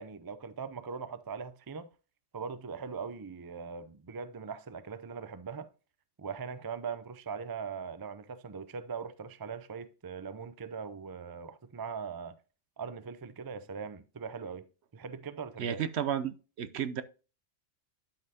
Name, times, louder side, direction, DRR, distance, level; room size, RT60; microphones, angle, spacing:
voice 1, 0.0-1.9 2.3-5.7 6.2-12.4 12.8-14.7 14.9-15.8, right 5 dB, 35° right, 0.3 m, -40 dB
voice 2, 15.6-17.0, right 9 dB, 65° right, 0.9 m, -33 dB
11.5 x 5.5 x 2.8 m
omnidirectional pair, 1.3 m